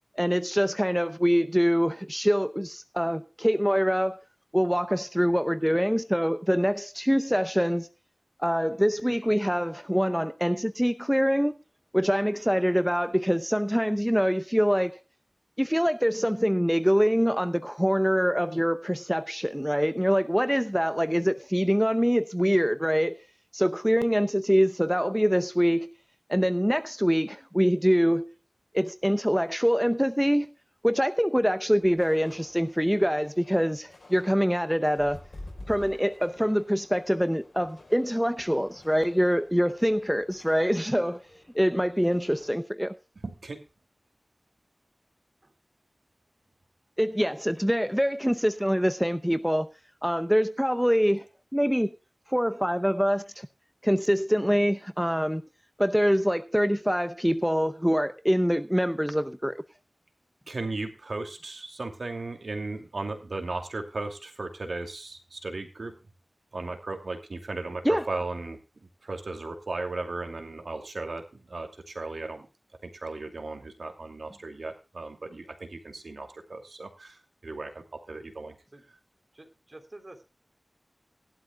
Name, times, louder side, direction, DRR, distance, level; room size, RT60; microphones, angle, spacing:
voice 1, 0.2-4.2 4.5-7.9 8.4-11.6 11.9-15.0 15.6-23.2 23.5-25.9 26.3-28.3 28.7-30.5 30.8-35.2 35.7-41.3 41.5-42.9 47.0-49.7 50.0-51.2 51.5-51.9 52.3-53.5 53.8-55.4 55.8-59.5 67.8-68.1, equal, ahead, 0.7 m, -24 dB
sound 1, 31.8-42.5, left 2 dB, 65° left, 4.4 m, -50 dB
voice 2, 43.2-43.6 60.5-65.9 66.5-68.6 69.0-72.5 72.8-78.5, right 3 dB, 80° right, 2.6 m, -36 dB
voice 3, 79.3-80.2, right 2 dB, 45° right, 3.4 m, -48 dB
19.5 x 12.0 x 2.3 m
wide cardioid pair, 65°, 0 cm